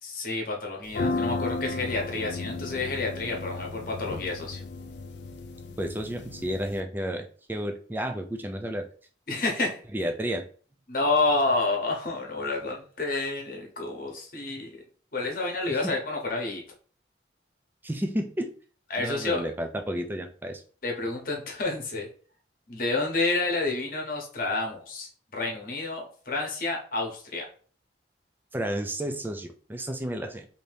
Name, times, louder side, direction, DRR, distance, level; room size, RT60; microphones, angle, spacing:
voice 1, 0.0-4.6 9.3-9.8 10.9-14.7 15.1-16.6 18.9-19.5 20.8-22.1 22.7-27.5, left 3 dB, 50° left, 1 dB, 0.9 m, -29 dB
sound 1, 0.9-6.8, left 3 dB, 65° left, 0.4 m, -34 dB
voice 2, 5.8-8.9 9.9-10.5 15.7-16.0 17.8-18.5 19.0-20.6 28.5-30.5, equal, 10° right, 5 dB, 0.3 m, -32 dB
2.7 x 2.7 x 3.3 m, 0.43 s
head